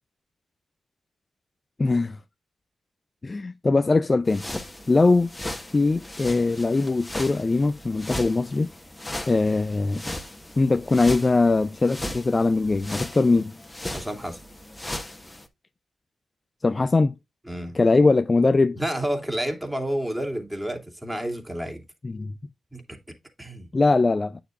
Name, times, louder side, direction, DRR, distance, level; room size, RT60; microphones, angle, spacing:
voice 1, 1.8-2.2 3.2-4.4 4.9-5.3 5.7-8.7 9.3-10.0 10.6-13.5 16.6-17.2 17.7-18.8 22.0-22.3 23.7-24.4, left 3 dB, 35° left, 0.6 m, -21 dB
sound 1, 4.3-15.5, left 1 dB, 15° left, 1.6 m, -37 dB
voice 2, 13.9-14.4 17.5-17.8 18.7-21.8 22.7-23.0 23.4-23.7, right 1 dB, 10° right, 2.9 m, -30 dB
9.3 x 6.9 x 2.5 m
supercardioid pair, 40°, 0 cm